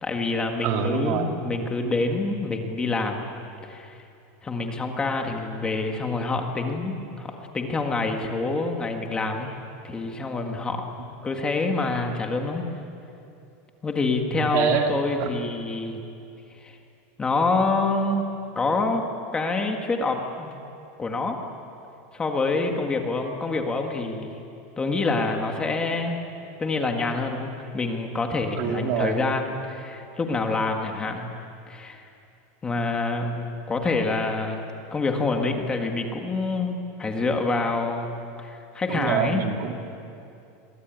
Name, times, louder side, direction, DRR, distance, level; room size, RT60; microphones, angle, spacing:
voice 1, 0.0-3.3 3.6-4.0 4.4-9.5 9.8-10.8 11.2-12.6 13.8-16.0 16.6-16.8 17.2-18.3 18.5-19.0 19.3-20.6 21.0-21.4 22.1-24.3 24.8-26.2 26.6-31.3 31.7-32.1 32.6-34.6 34.9-38.1 38.4-39.4, left 3 dB, 10° left, 3 dB, 1.7 m, -26 dB
voice 2, 0.6-1.3 14.3-15.3 28.6-29.2 38.9-39.7, right 6 dB, 40° right, 4 dB, 2.4 m, -26 dB
27.5 x 22.5 x 9.4 m, 2.7 s
supercardioid pair, 170°, 8 cm